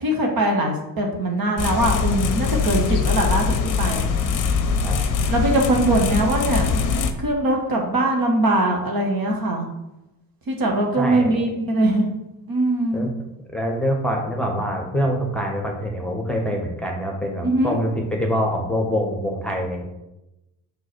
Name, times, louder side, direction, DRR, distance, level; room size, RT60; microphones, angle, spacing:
voice 1, 0.0-4.0 5.3-6.8 7.2-9.7 10.5-12.1 12.5-13.0 17.4-17.8, right 1 dB, 45° right, 1 dB, 1.5 m, -21 dB
sound 1, 1.6-7.1, left 5 dB, 40° left, 0.8 m, -22 dB
voice 2, 11.0-11.3 12.9-13.1 13.5-19.9, equal, ahead, 1 dB, 1.3 m, -25 dB
5.0 x 4.5 x 4.6 m, 0.92 s
figure-of-eight pair, 45°, 50 cm